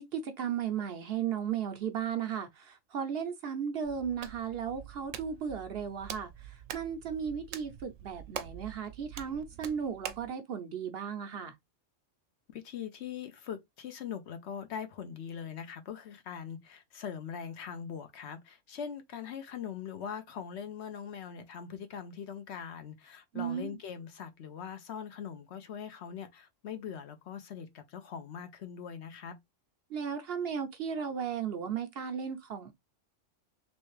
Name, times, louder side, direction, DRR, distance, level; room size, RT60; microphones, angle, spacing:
voice 1, 0.0-6.3 6.7-11.5 23.3-23.7 29.9-32.7, right 7 dB, 60° right, 0.8 m, -35 dB
Hands, 3.8-10.3, right 9 dB, 80° right, 1.0 m, -45 dB
voice 2, 12.5-29.4, left 7 dB, 65° left, 0.9 m, -42 dB
3.3 x 3.1 x 3.1 m
omnidirectional pair, 1.3 m